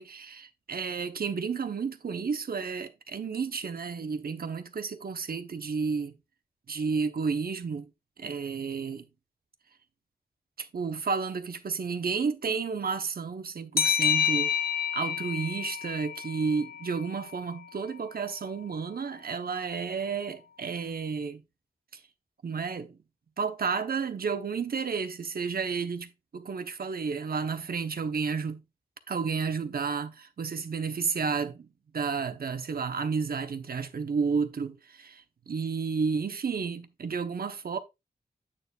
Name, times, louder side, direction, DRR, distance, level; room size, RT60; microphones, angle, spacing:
voice 1, 0.0-6.1 6.7-7.9 8.2-9.1 10.6-14.5 14.9-21.4 21.9-22.0 22.4-23.0 23.4-28.6 29.1-31.7 31.9-37.8, right 5 dB, 80° right, 1.0 m, -31 dB
sound 1, 13.8-17.1, left 8 dB, 90° left, 0.9 m, -28 dB
8.8 x 6.7 x 2.4 m
wide cardioid pair, 85°, 15 cm